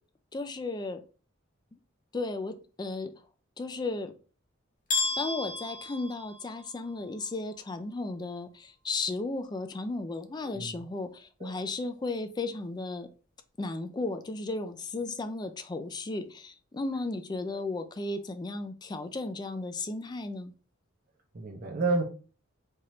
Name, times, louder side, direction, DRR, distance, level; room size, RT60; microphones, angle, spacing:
voice 1, 0.3-1.0 2.1-3.1 3.6-4.1 5.2-13.1 13.6-20.5, left 3 dB, 20° left, 0.4 m, -35 dB
sound 1, 4.9-6.9, left 3 dB, 45° left, 1.1 m, -32 dB
voice 2, 10.4-10.8 11.4-11.5 17.5-17.6 21.3-22.0, right 3 dB, 45° right, 0.7 m, -30 dB
4.4 x 2.5 x 3.1 m
head